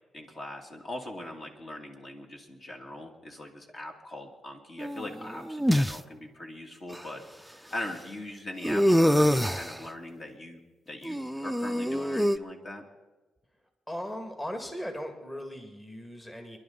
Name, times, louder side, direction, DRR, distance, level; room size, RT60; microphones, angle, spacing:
voice 1, 0.1-10.6 10.9-12.8, left 1 dB, 45° left, 2 dB, 2.3 m, -41 dB
sound 1, 4.8-5.9 6.9-7.0 8.6-9.8 11.0-12.4, equal, ahead, 0.5 m, -25 dB
voice 2, 13.9-16.6, equal, 20° left, 4 dB, 2.0 m, -38 dB
28.0 x 11.0 x 3.9 m, 1.2 s
cardioid pair, 85°, 0 cm